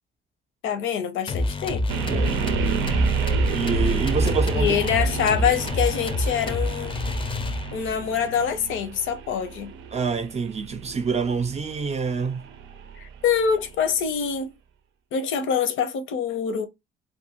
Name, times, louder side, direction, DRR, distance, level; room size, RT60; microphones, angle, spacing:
voice 1, 0.6-1.8 4.5-7.1 7.7-9.7 13.0-14.5 15.1-16.7, left 7 dB, 80° left, 0.6 m, -25 dB
sound 1, 1.3-8.0, left 2 dB, 25° left, 0.4 m, -27 dB
sound 2, 1.9-13.9, right 7 dB, 90° right, 0.5 m, -30 dB
voice 2, 3.5-4.7 9.9-12.4, right 5 dB, 35° right, 0.4 m, -26 dB
2.6 x 2.5 x 2.8 m
cardioid pair, 90°, 20 cm